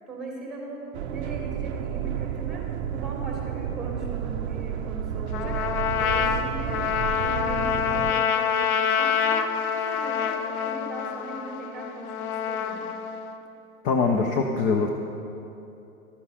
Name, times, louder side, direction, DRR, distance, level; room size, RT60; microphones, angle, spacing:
voice 1, 0.1-0.8 1.1-2.6 2.9-6.8 7.1-9.5 9.9-12.9, right 2 dB, ahead, -2 dB, 2.8 m, -39 dB
sound 1, 0.9-8.1, right 10 dB, 45° right, 0.6 m, -31 dB
Trumpet, 5.3-13.4, left 8 dB, 70° left, 1.0 m, -27 dB
voice 2, 13.8-14.9, left 4 dB, 20° left, 3 dB, 0.5 m, -23 dB
12.5 x 9.4 x 4.9 m, 2.8 s
hypercardioid pair, 125°, 45 cm